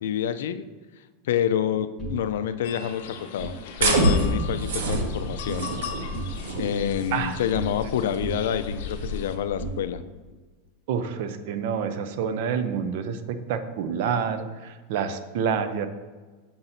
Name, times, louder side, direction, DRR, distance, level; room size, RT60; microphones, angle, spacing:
voice 1, 0.0-0.6 1.3-5.7 6.6-10.0, left 9 dB, 85° left, 12 dB, 0.3 m, -28 dB
sound 1, 2.0-3.6 4.0-4.6 4.9-5.8 6.1-7.9 8.2-10.3, right 2 dB, 5° right, 1.2 m, -38 dB
sound 2, 2.6-9.3, left 7 dB, 65° left, 0.7 m, -39 dB
sound 3, 3.8-9.8, right 1 dB, 85° right, 0.9 m, -28 dB
voice 2, 10.9-15.9, right 7 dB, 55° right, 10 dB, 0.5 m, -28 dB
7.0 x 2.6 x 5.7 m, 1.3 s
supercardioid pair, 155°, 0 cm